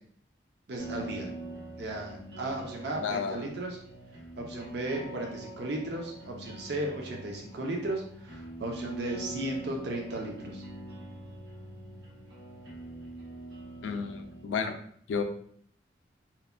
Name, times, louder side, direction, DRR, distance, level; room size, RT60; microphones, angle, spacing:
voice 1, 0.7-1.3 1.8-3.8 4.4-10.6, right 1 dB, 60° right, 1 dB, 0.5 m, -35 dB
sound 1, 0.8-14.4, right 2 dB, 90° right, 1.0 m, -44 dB
voice 2, 3.0-3.4 13.8-14.7 15.1-15.2, left 5 dB, 80° left, 6 dB, 0.3 m, -31 dB
2.8 x 2.1 x 2.4 m, 0.63 s
head